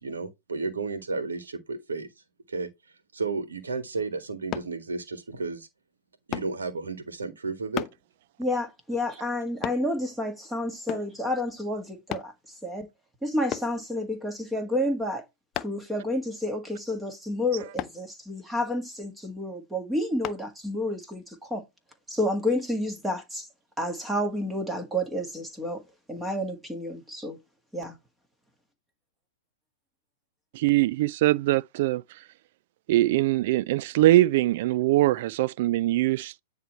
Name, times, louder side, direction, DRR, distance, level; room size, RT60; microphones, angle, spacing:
voice 1, 0.0-2.1 2.5-2.7 3.1-5.7 6.3-7.8, right 4 dB, 80° right, 1.6 m, -32 dB
sound 1, 4.5-4.7 6.3-6.6 7.8-8.0 9.6-9.9 10.9-11.2 12.1-12.3 13.5-13.8 15.5-15.9 17.8-18.0 20.2-20.4 21.0-21.1, left 12 dB, 35° left, 0.4 m, -33 dB
voice 2, 8.4-12.9 13.2-15.2 15.6-21.6 22.1-23.5 23.8-25.8 26.1-27.4 27.7-28.0, left 1 dB, 10° right, 1.7 m, -30 dB
voice 3, 30.5-32.0 32.9-36.4, right 16 dB, 55° right, 0.3 m, -22 dB
9.6 x 3.3 x 4.4 m
hypercardioid pair, 105°, 0 cm